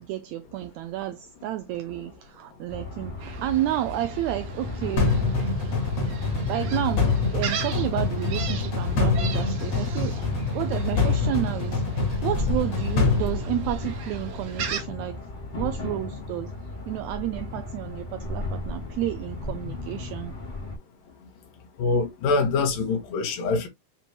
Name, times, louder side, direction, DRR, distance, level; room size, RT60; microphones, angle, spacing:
voice 1, 0.0-5.1 6.5-10.1 10.5-15.2 15.6-16.5 16.9-20.3, right 14 dB, 85° right, 1.6 m, -31 dB
sound 1, 2.7-20.8, left 2 dB, 30° left, 0.9 m, -36 dB
Gull seagull, 3.2-14.8, right 7 dB, 65° right, 1.6 m, -39 dB
sound 2, 5.0-14.2, left 4 dB, 55° left, 3.0 m, -25 dB
voice 2, 21.8-23.7, left 3 dB, 80° left, 2.8 m, -24 dB
6.8 x 3.0 x 2.4 m
omnidirectional pair, 3.7 m